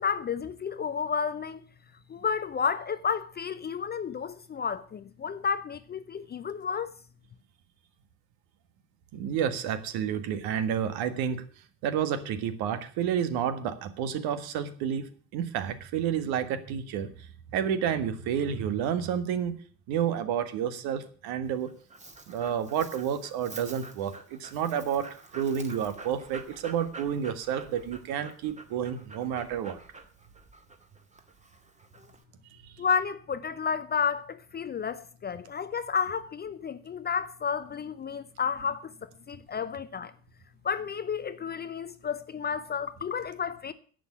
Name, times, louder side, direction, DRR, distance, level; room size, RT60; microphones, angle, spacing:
voice 1, 0.0-1.6 2.1-6.9 32.8-40.1 40.6-43.7, left 6 dB, 20° left, 0.7 m, -31 dB
voice 2, 9.1-11.4 11.8-19.6 19.9-21.7 22.3-29.8 32.5-32.7, right 8 dB, 50° right, 1.7 m, -30 dB
Dog, 21.4-32.2, right 2 dB, 15° right, 2.0 m, -48 dB
11.0 x 7.9 x 8.5 m
figure-of-eight pair, 65°, 46 cm